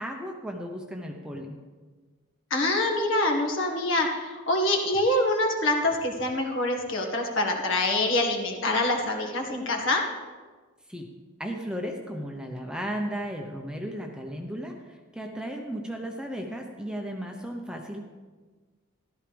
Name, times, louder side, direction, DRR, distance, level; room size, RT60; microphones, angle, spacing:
voice 1, 0.0-1.6 10.9-11.1 11.4-18.0, equal, 5° right, 2 dB, 0.9 m, -35 dB
voice 2, 2.5-10.0, left 1 dB, 60° left, 2 dB, 1.8 m, -25 dB
14.5 x 12.5 x 3.5 m, 1.4 s
head